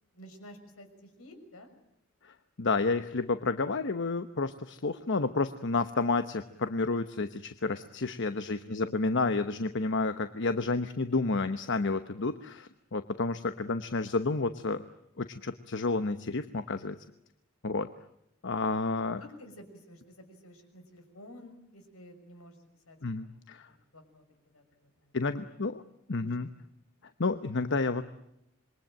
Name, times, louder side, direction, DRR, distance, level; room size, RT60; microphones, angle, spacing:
voice 1, 0.1-1.7 8.4-9.0 19.2-25.1 25.4-25.6 26.2-26.5, equal, 75° left, 7 dB, 6.1 m, -53 dB
voice 2, 2.2-14.8 15.2-17.0 17.6-17.9 18.4-19.2 23.0-23.7 25.1-25.8 26.1-26.5 27.2-28.0, left 3 dB, 60° left, 10 dB, 1.0 m, -30 dB
27.0 x 22.5 x 9.0 m, 0.80 s
head